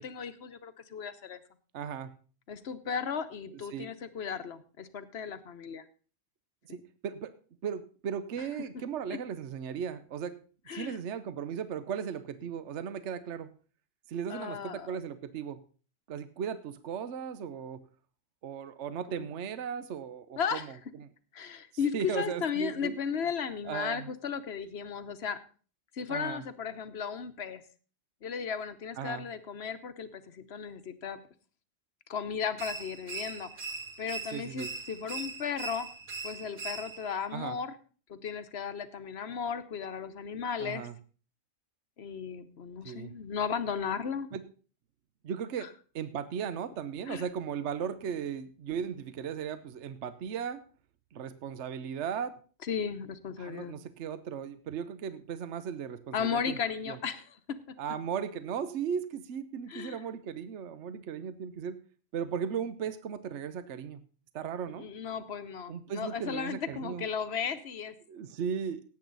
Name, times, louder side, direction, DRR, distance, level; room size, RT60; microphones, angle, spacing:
voice 1, 0.0-1.4 2.5-5.8 6.7-6.8 10.7-11.0 14.3-15.0 19.1-19.3 20.4-20.6 21.3-25.4 25.9-27.6 28.2-31.2 32.1-33.5 34.0-35.9 36.2-37.7 38.1-40.9 42.0-44.3 45.6-45.7 47.1-47.2 52.7-53.7 56.1-57.6 59.7-60.0 64.8-67.9, left 7 dB, 55° left, 12 dB, 1.2 m, -35 dB
voice 2, 1.7-2.1 3.5-3.9 6.7-7.3 7.6-10.4 10.7-13.5 14.1-15.6 16.1-17.8 18.4-21.1 21.9-23.0 23.6-24.1 26.1-26.4 29.0-29.3 34.3-34.7 37.3-37.6 40.6-40.9 42.8-43.1 44.3-44.4 45.2-50.6 51.1-52.4 53.4-56.6 56.9-57.0 57.8-61.8 62.1-64.0 64.3-64.9 65.7-67.1 68.1-68.8, right 7 dB, 60° right, 12 dB, 1.1 m, -36 dB
sound 1, 32.6-37.2, right 4 dB, 40° right, 1.3 m, -40 dB
17.5 x 8.5 x 4.0 m, 0.39 s
omnidirectional pair, 1.4 m